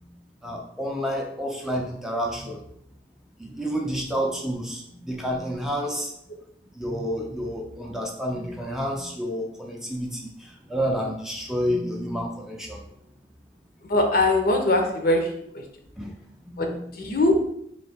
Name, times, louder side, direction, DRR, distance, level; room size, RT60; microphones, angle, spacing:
voice 1, 0.4-2.6 3.4-6.1 6.8-10.3 10.7-12.8 16.0-16.1 16.5-16.8, equal, 5° right, 0 dB, 0.5 m, -29 dB
voice 2, 13.9-15.3 15.5-15.6 16.6-17.5, left 1 dB, 55° left, 3 dB, 0.7 m, -22 dB
3.1 x 2.8 x 4.3 m, 0.72 s
head